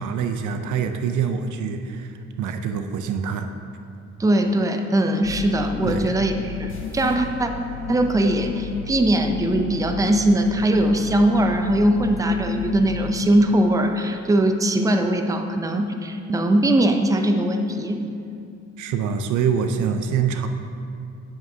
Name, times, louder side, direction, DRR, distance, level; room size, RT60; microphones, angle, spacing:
voice 1, 0.0-3.5 5.9-6.1 18.8-20.5, right 7 dB, 80° right, 7 dB, 0.6 m, -25 dB
voice 2, 4.2-7.5 7.9-18.0, right 1 dB, 10° right, 5 dB, 0.5 m, -20 dB
sound 1, 5.2-13.2, left 4 dB, 60° left, 0.9 m, -33 dB
sound 2, 6.7-8.0, left 1 dB, 40° left, 1.8 m, -41 dB
10.0 x 7.6 x 2.8 m, 2.5 s
cardioid pair, 90°, 30 cm